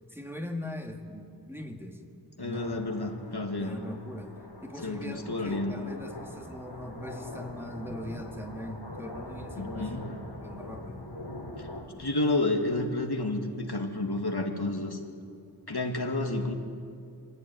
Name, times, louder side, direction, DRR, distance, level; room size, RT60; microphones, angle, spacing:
voice 1, 0.1-2.0 2.4-2.7 3.6-4.3 4.6-11.1, left 1 dB, 5° right, 2 dB, 2.2 m, -40 dB
voice 2, 2.4-3.8 4.8-5.7 9.6-10.1 12.0-15.0 15.7-16.5, left 2 dB, 65° left, 3 dB, 2.2 m, -30 dB
sound 1, 2.5-11.8, left 1 dB, 80° left, 3.7 m, -43 dB
24.5 x 15.5 x 9.5 m, 2.5 s
wide cardioid pair, 45°, 42 cm